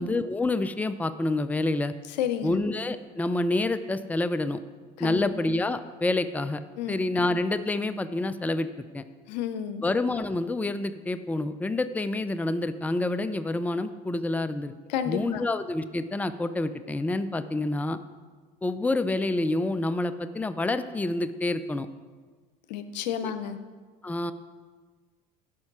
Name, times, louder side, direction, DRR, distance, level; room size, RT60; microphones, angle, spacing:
voice 1, 0.0-1.9 2.4-4.6 5.0-6.6 6.9-9.0 9.8-14.7 15.1-18.0 18.6-21.9 23.2-23.3 24.0-24.3, left 2 dB, 5° left, 12 dB, 0.5 m, -28 dB
voice 2, 2.2-2.6 5.0-5.3 6.8-6.9 9.3-9.9 14.9-15.4 22.7-23.6, left 9 dB, 85° left, 11 dB, 0.7 m, -31 dB
12.0 x 5.4 x 5.9 m, 1.5 s
hypercardioid pair, 75°, 21 cm